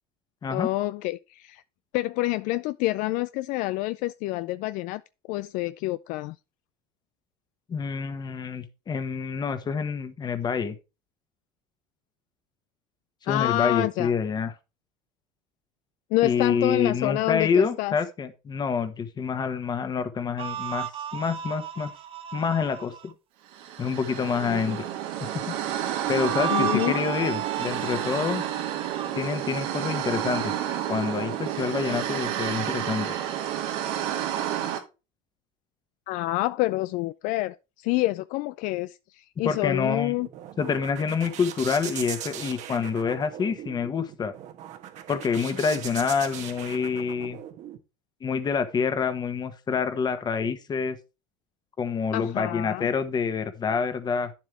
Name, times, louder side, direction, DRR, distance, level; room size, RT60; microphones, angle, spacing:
voice 1, 0.5-1.6 1.9-5.0 5.3-6.4 13.3-14.1 16.1-17.9 24.5-24.6 26.5-27.0 36.1-40.3 52.1-52.9, left 18 dB, 65° left, 0.4 m, -27 dB
voice 2, 7.7-10.7 13.2-14.5 16.2-21.9 22.3-23.1 23.8-24.8 25.5-25.6 26.1-28.4 29.1-30.5 30.9-33.1 39.4-40.1 40.6-44.3 45.1-47.4 48.2-51.0 51.8-54.3, left 6 dB, 30° left, 1.4 m, -27 dB
sound 1, 20.4-23.1 26.0-29.1, right 9 dB, 40° right, 0.9 m, -34 dB
sound 2, 23.5-34.8, right 11 dB, 75° right, 2.3 m, -30 dB
sound 3, 39.9-47.8, right 10 dB, 55° right, 1.4 m, -40 dB
9.5 x 7.5 x 3.4 m
supercardioid pair, 120°, 14 cm